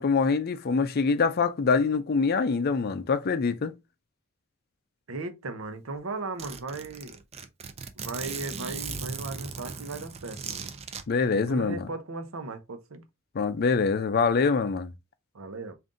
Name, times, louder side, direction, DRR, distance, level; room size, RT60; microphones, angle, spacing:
voice 1, 0.0-3.7 11.1-11.9 13.3-14.9, left 4 dB, 50° left, 0.4 m, -24 dB
voice 2, 5.1-7.2 8.0-10.6 11.3-13.0 15.3-15.7, right 3 dB, 85° right, 0.8 m, -37 dB
Zipper (clothing), 5.6-5.7 5.9-6.0 6.4-11.0, right 5 dB, 30° right, 0.5 m, -38 dB
3.7 x 2.6 x 3.7 m
head